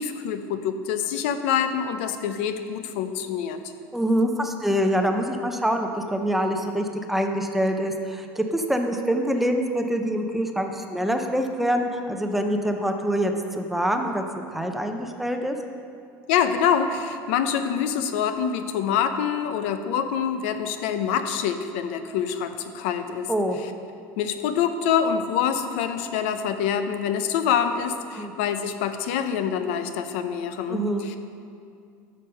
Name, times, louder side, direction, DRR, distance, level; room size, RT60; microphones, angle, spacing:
voice 1, 0.0-3.6 16.3-23.3 24.2-31.2, left 8 dB, 85° left, 9 dB, 0.7 m, -26 dB
voice 2, 3.9-15.6 23.3-23.6 28.1-28.3 30.7-31.1, equal, 5° right, 4 dB, 0.6 m, -25 dB
14.0 x 5.3 x 5.7 m, 2.4 s
cardioid pair, 160°, 7 cm